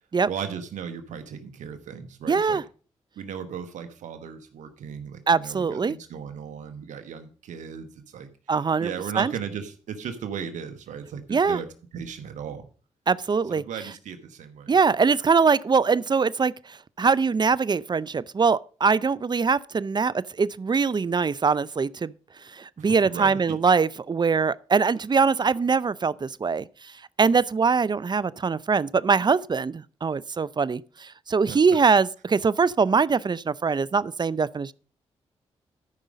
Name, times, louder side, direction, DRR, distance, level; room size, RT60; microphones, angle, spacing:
voice 1, 0.3-2.6 3.2-8.3 8.8-11.7 11.9-12.7 13.5-14.8 22.8-23.6 31.5-31.6, right 7 dB, 85° right, 1.3 m, -36 dB
voice 2, 2.3-2.6 5.3-6.0 8.5-8.9 9.2-9.3 11.3-11.6 13.1-13.6 14.7-16.5 17.0-22.1 22.6-26.7 27.2-34.7, right 5 dB, 35° right, 0.5 m, -22 dB
13.0 x 5.4 x 5.1 m
supercardioid pair, 45°, 12 cm